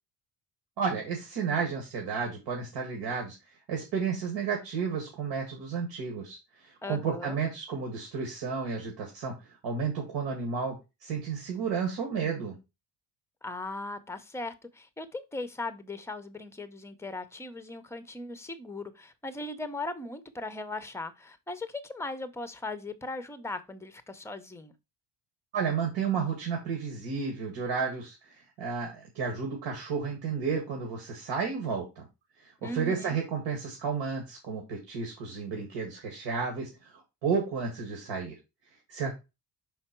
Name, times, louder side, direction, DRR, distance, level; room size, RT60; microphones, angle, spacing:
voice 1, 0.8-3.4 3.7-9.3 9.6-10.7 11.0-12.6 25.5-32.1 32.4-38.4 38.9-39.1, right 5 dB, 75° right, 1.9 m, -32 dB
voice 2, 6.8-7.4 13.4-24.7 32.6-33.2, left 2 dB, 5° left, 0.6 m, -38 dB
5.6 x 4.6 x 4.3 m
cardioid pair, 150°, 42 cm